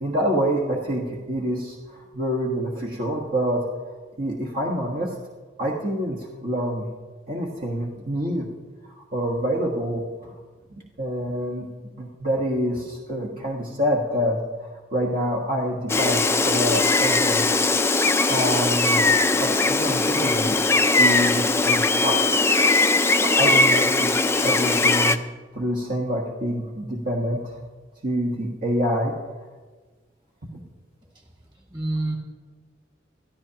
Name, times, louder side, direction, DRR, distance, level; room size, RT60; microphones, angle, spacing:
voice 1, 0.0-3.7 4.2-5.2 5.6-6.9 7.3-8.5 8.9-10.3 11.0-11.7 12.0-17.5 18.3-19.1 19.4-20.7 20.9-22.4 23.2-24.1 24.4-25.2 25.5-27.6 28.0-29.1, equal, 50° right, -2 dB, 1.4 m, -26 dB
Gull seagull, 15.9-25.2, left 3 dB, 15° left, 0.4 m, -20 dB
voice 2, 31.5-32.2, right 2 dB, 25° right, 0 dB, 2.3 m, -28 dB
21.5 x 13.5 x 2.9 m, 1.4 s
head